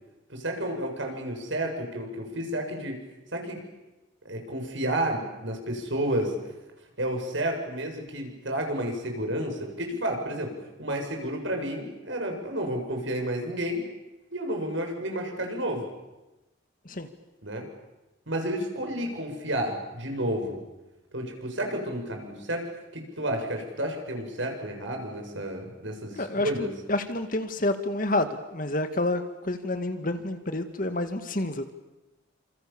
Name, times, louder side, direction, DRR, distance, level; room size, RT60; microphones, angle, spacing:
voice 1, 0.3-3.0 3.3-3.6 4.3-6.3 7.0-10.5 10.8-13.8 14.3-15.9 17.4-17.7 18.3-20.6 21.1-26.7, right 1 dB, 70° right, 3 dB, 7.2 m, -31 dB
voice 2, 26.2-31.7, left 2 dB, 45° left, 8 dB, 2.1 m, -29 dB
29.5 x 27.5 x 7.2 m, 1.0 s
head